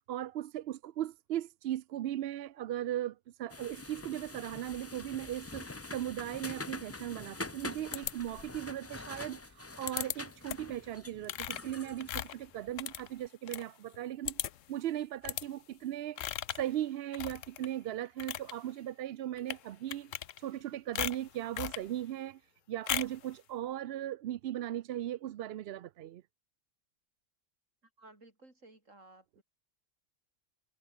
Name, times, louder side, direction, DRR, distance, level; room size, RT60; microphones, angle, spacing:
voice 1, 0.1-14.4 14.7-20.1 20.4-22.4 22.7-26.2, right 12 dB, 65° right, 0.7 m, -38 dB
sound 1, 3.5-13.0, left 3 dB, 20° left, 0.5 m, -45 dB
sound 2, 7.9-8.6 9.9-10.2 10.5-10.8 11.2-13.6 13.9-14.0 14.3-14.7 15.2-15.5 16.2-16.7 17.1-17.7 18.1-18.5 19.4-19.6 19.9-20.6 21.0-21.9 22.9-23.2, left 11 dB, 80° left, 1.1 m, -37 dB
voice 2, 28.0-29.4, right 2 dB, 85° right, 5.4 m, -57 dB
omnidirectional pair, 1.3 m